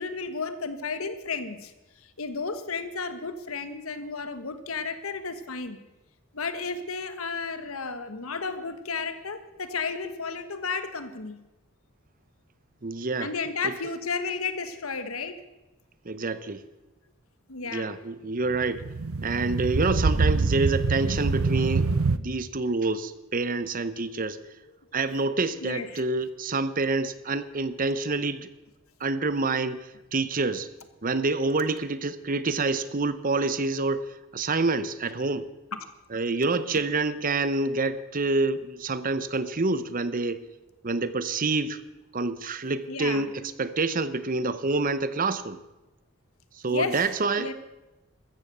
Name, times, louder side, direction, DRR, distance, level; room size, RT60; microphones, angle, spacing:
voice 1, 0.0-1.7 2.2-5.8 6.3-11.4 13.2-15.4 17.5-18.0 25.6-26.0 35.7-35.8 42.9-43.3 46.7-47.5, left 4 dB, 90° left, 10 dB, 1.4 m, -33 dB
voice 2, 12.8-13.3 13.6-13.9 16.0-16.6 17.7-18.8 19.2-24.4 24.9-28.5 29.0-29.8 30.1-30.7 31.0-35.5 36.1-40.4 40.8-41.9 42.1-45.6 46.6-47.5, right 3 dB, 40° right, 14 dB, 0.8 m, -27 dB
sound 1, 18.5-22.2, right 3 dB, 85° right, 0.7 m, -25 dB
14.5 x 14.0 x 6.8 m, 1.0 s
head